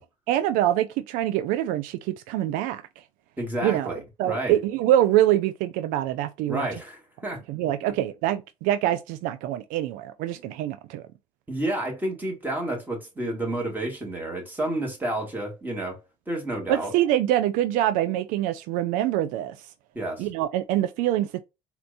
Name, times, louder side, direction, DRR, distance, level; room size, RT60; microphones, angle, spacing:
voice 1, 0.3-2.8 3.6-6.7 7.5-11.1 16.7-19.6 20.2-21.4, right 13 dB, 75° right, 0.4 m, -25 dB
voice 2, 3.4-4.6 6.5-7.4 7.8-7.9 11.5-16.0 16.3-16.9 19.9-20.3, right 1 dB, 15° right, 2.3 m, -30 dB
4.3 x 2.8 x 2.5 m
supercardioid pair, 80°, 14 cm